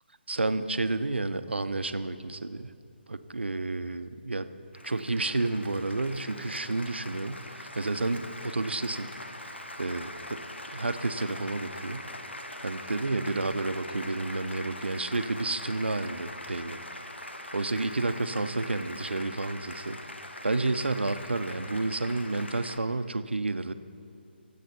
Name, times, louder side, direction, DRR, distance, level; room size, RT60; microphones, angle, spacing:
voice 1, 0.3-2.7 3.1-4.5 4.8-9.1 9.8-10.4 10.7-12.0 12.6-16.8 17.5-20.0 20.4-23.7, right 2 dB, 75° right, 11 dB, 0.6 m, -30 dB
Applause, 4.7-22.8, left 1 dB, 80° left, 1.1 m, -42 dB
23.5 x 8.2 x 4.3 m, 2.5 s
figure-of-eight pair, 145°, 6 cm